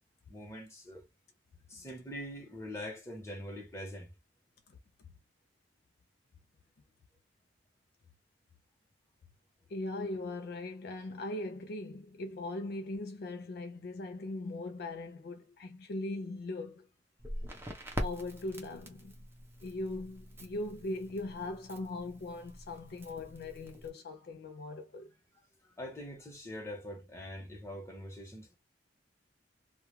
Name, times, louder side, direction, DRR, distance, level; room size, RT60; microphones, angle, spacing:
voice 1, 0.3-1.1 1.7-4.1 25.6-28.6, equal, 15° left, 0.9 m, -43 dB
voice 2, 9.7-16.9 18.0-19.1 19.6-25.1, left 2 dB, 60° left, 0.4 m, -40 dB
Crackle, 17.2-23.9, equal, 15° right, 0.7 m, -44 dB
2.3 x 2.2 x 3.0 m
head